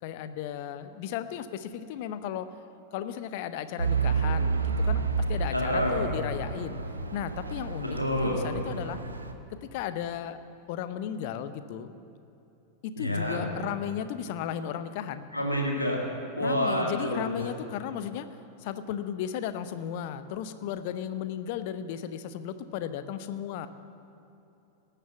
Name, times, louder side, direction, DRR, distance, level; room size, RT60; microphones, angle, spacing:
voice 1, 0.0-2.5 2.9-5.0 5.3-6.8 7.1-9.0 9.5-10.4 10.7-12.0 12.8-15.3 16.4-18.3 18.6-23.7, left 9 dB, 50° left, 11 dB, 0.7 m, -35 dB
Truck / Idling, 3.8-9.3, right 4 dB, 75° right, 0.8 m, -30 dB
voice 2, 5.5-6.1 7.8-8.5 13.0-13.4 15.3-16.0 16.4-17.4, equal, 85° left, -1 dB, 2.2 m, -28 dB
18.5 x 6.8 x 7.1 m, 2.9 s
figure-of-eight pair, 90°, 0 cm